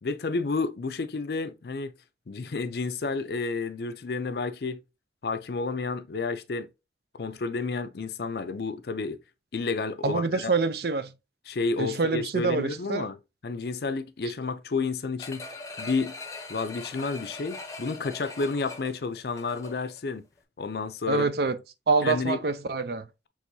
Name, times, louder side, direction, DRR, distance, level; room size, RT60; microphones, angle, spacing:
voice 1, 0.0-1.9 2.3-4.8 5.2-6.7 7.1-9.2 9.5-10.5 11.5-13.2 13.4-15.5 15.8-16.1 16.5-20.2 20.6-21.3 22.0-22.4, left 4 dB, 60° left, 0.5 m, -30 dB
voice 2, 10.0-11.1 11.8-13.1 21.1-21.6 21.9-23.1, right 4 dB, 60° right, 0.5 m, -26 dB
sound 1, 15.2-20.0 20.4-20.5, left 3 dB, 20° left, 0.7 m, -41 dB
6.1 x 3.1 x 2.7 m
head